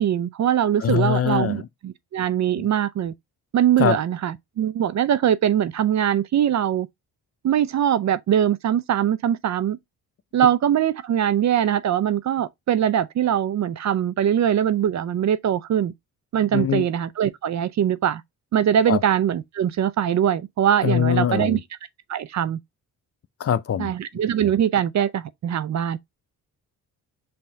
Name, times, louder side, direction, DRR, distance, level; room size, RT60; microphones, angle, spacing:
voice 1, 0.0-3.1 3.5-6.9 7.4-9.8 10.3-15.9 16.3-18.2 18.5-21.6 22.1-22.6 23.8-26.0, right 10 dB, 45° right, 0.5 m, -22 dB
voice 2, 0.8-1.7 2.6-2.7 3.8-4.0 16.5-16.9 18.9-19.0 20.8-21.6 23.4-23.9, left 8 dB, 40° left, 0.5 m, -22 dB
5.4 x 2.8 x 3.4 m
supercardioid pair, 60°, 38 cm